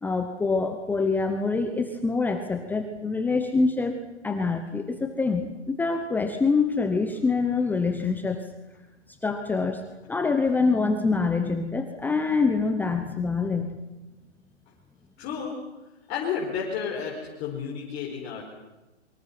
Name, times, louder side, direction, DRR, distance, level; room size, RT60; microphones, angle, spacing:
voice 1, 0.0-3.9 4.2-8.4 9.2-9.8 10.1-13.8, left 4 dB, 5° left, 5 dB, 1.0 m, -25 dB
voice 2, 15.2-15.6 16.1-18.4, left 6 dB, 25° left, -4 dB, 4.8 m, -31 dB
28.5 x 24.5 x 6.0 m, 1.0 s
hypercardioid pair, 145°, 35 cm